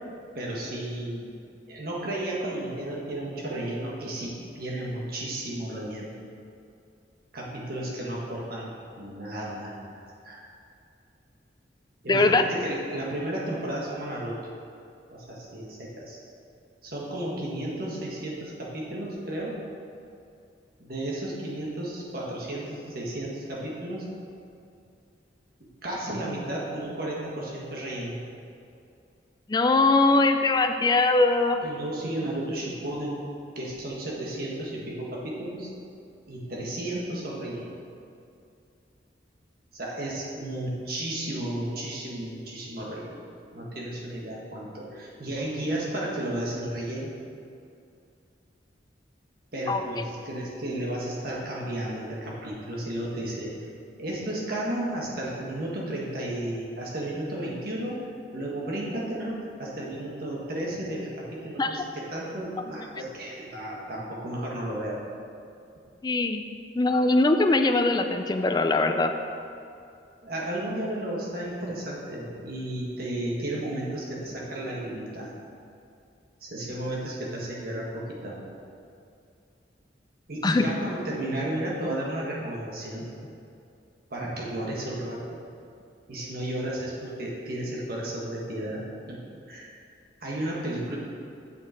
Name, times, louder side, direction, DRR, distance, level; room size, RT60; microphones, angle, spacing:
voice 1, 0.3-1.3 1.7-6.1 7.3-8.7 9.0-9.7 10.2-10.5 12.0-14.3 15.1-16.2 16.8-19.6 20.8-24.0 25.8-28.2 31.6-33.2 33.5-35.7 36.3-37.7 39.7-43.1 43.5-47.1 49.5-53.5 54.0-58.0 58.3-65.0 70.2-75.3 76.4-78.3 80.3-83.1 84.1-85.2 86.1-89.2 89.5-89.7 90.2-91.0, right 1 dB, 55° right, -4 dB, 1.6 m, -33 dB
voice 2, 12.1-12.4 29.5-31.6 49.7-49.8 61.6-61.8 66.0-66.4 66.8-69.1 80.4-80.6, left 2 dB, 25° left, 7 dB, 0.4 m, -21 dB
7.7 x 6.4 x 4.4 m, 2.5 s
head